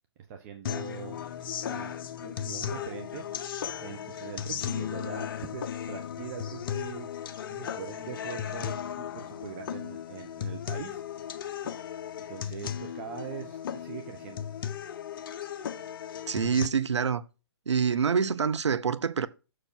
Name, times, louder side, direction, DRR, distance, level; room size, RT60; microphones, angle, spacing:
voice 1, 0.3-1.2 1.7-3.3 3.8-11.0 12.3-14.5, right 8 dB, 35° right, 1.0 m, -42 dB
sound 1, 0.7-16.7, left 9 dB, 50° left, 0.7 m, -36 dB
voice 2, 16.3-17.2 17.7-19.3, right 6 dB, 80° right, 0.6 m, -26 dB
6.5 x 4.7 x 5.7 m
hypercardioid pair, 135°, 14 cm